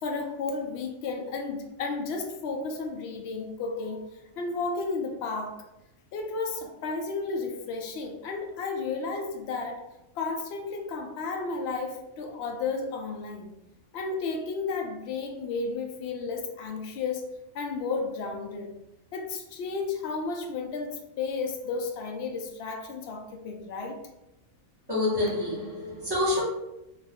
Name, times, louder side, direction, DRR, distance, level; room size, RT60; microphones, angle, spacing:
voice 1, 0.0-4.1 4.4-5.6 6.1-9.8 10.2-13.5 13.9-17.2 17.5-18.7 19.1-24.0, left 4 dB, 65° left, 0.6 m, -33 dB
voice 2, 24.9-26.4, left 2 dB, 20° right, 1.0 m, -27 dB
2.5 x 2.4 x 3.4 m
omnidirectional pair, 1.5 m